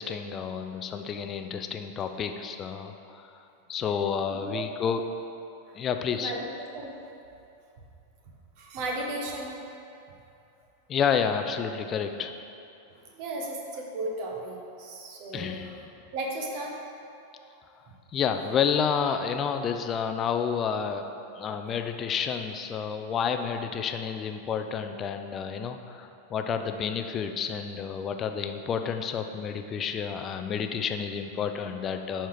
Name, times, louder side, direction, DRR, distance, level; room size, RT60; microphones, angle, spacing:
voice 1, 0.0-3.3 3.7-5.0 5.7-6.3 10.9-12.3 15.3-15.8 18.1-21.1 21.4-32.3, left 7 dB, 25° left, 6 dB, 0.5 m, -30 dB
voice 2, 4.3-4.6 5.7-5.8 6.2-6.9 8.6-9.6 13.1-15.8 16.1-16.8, right 2 dB, 45° right, 0 dB, 1.4 m, -35 dB
11.0 x 4.4 x 5.0 m, 2.7 s
figure-of-eight pair, 90°, 0 cm